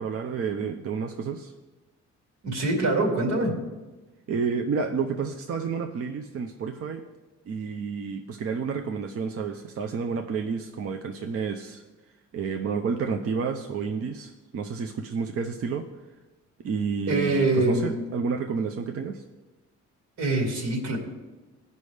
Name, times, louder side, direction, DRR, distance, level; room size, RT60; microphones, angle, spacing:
voice 1, 0.0-1.5 4.3-7.0 7.5-11.8 12.3-15.9 16.6-19.2, right 5 dB, 50° right, 4 dB, 0.6 m, -30 dB
voice 2, 2.4-3.6 17.1-18.0 20.2-21.0, right 2 dB, 80° right, -1 dB, 2.3 m, -24 dB
15.5 x 5.4 x 3.3 m, 1.2 s
cardioid pair, 90°, 30 cm